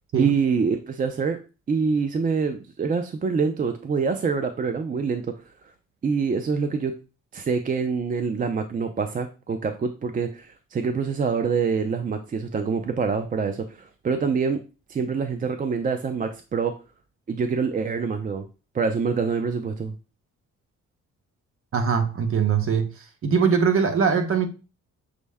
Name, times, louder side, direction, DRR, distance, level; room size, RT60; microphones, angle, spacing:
voice 1, 0.2-1.4 1.7-5.3 6.0-6.9 7.3-14.6 14.9-16.7 17.3-18.4 18.7-19.9, right 5 dB, 30° right, 7 dB, 0.4 m, -25 dB
voice 2, 21.7-22.9 23.2-24.5, right 6 dB, 45° right, 7 dB, 0.8 m, -21 dB
6.1 x 2.1 x 3.4 m, 0.32 s
cardioid pair, 90°, 30 cm